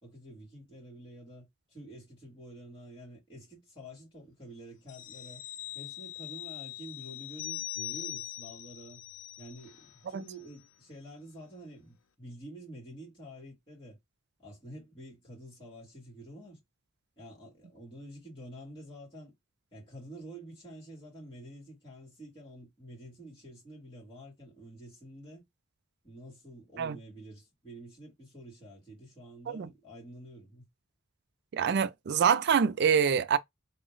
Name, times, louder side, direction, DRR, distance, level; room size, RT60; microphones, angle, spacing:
voice 1, 0.0-5.4 5.7-9.0 9.4-14.0 14.4-16.6 17.2-19.3 19.7-25.4 26.0-30.7, right 1 dB, 25° left, 2.8 m, -48 dB
sound 1, 4.9-10.0 10.3-10.5, left 15 dB, 90° left, 0.6 m, -42 dB
voice 2, 31.5-33.4, right 7 dB, 55° right, 0.4 m, -25 dB
3.8 x 2.1 x 3.8 m
head